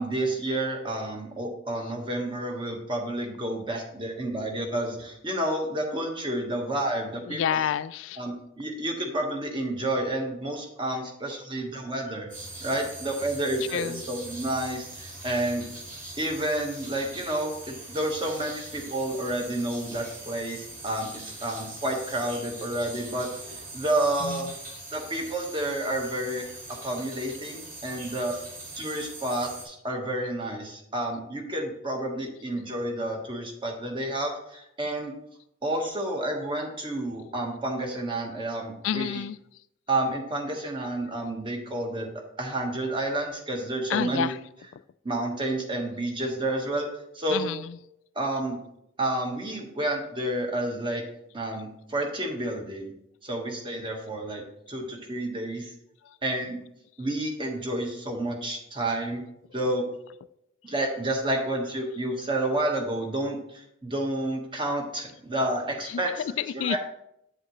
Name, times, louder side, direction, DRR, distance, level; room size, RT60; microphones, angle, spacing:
voice 1, 0.0-7.7 8.2-12.3 12.6-15.7 16.2-24.5 24.9-26.4 26.8-28.4 28.8-35.1 35.6-39.2 39.9-42.1 42.4-44.3 45.0-46.9 47.1-47.5 48.1-48.6 49.0-51.0 51.3-52.9 53.2-55.7 56.2-56.6 57.0-59.2 59.5-59.9 60.6-66.3 66.5-66.8, right 1 dB, 25° right, 1 dB, 1.3 m, -30 dB
voice 2, 7.3-8.2 13.7-14.0 24.2-24.4 38.8-39.4 43.9-44.4 47.3-47.6 66.2-66.8, left 8 dB, 70° left, 14 dB, 0.3 m, -29 dB
sound 1, 12.3-29.6, right 2 dB, 45° right, 3.3 m, -42 dB
8.3 x 7.7 x 3.1 m, 0.79 s
head